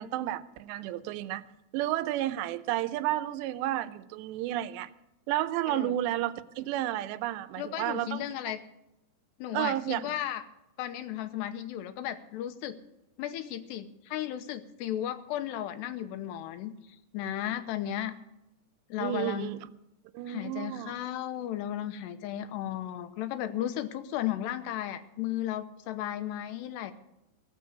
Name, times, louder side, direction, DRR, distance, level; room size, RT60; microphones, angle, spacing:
voice 1, 0.0-1.4 1.7-4.9 5.3-8.2 9.5-10.2 19.0-19.6 20.1-20.9, right 13 dB, 90° right, 2.9 m, -31 dB
voice 2, 7.6-8.6 9.4-10.4 10.8-12.8 13.2-18.2 18.9-19.5 20.3-26.9, left 11 dB, 85° left, 3.0 m, -35 dB
16.5 x 7.5 x 8.4 m
omnidirectional pair, 4.9 m